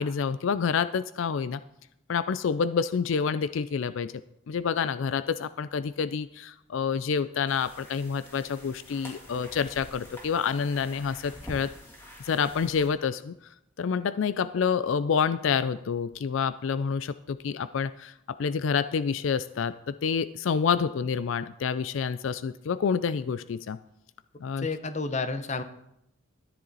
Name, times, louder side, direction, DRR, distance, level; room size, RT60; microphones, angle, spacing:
voice 1, 0.0-1.6 2.1-4.1 4.5-11.7 12.2-13.3 13.8-23.8 24.4-24.7, left 6 dB, 75° left, 14 dB, 0.4 m, -28 dB
sound 1, 7.5-12.9, equal, 10° left, 2.6 m, -47 dB
voice 2, 24.6-25.6, left 3 dB, 35° left, 10 dB, 0.8 m, -30 dB
13.5 x 10.0 x 4.0 m, 0.78 s
head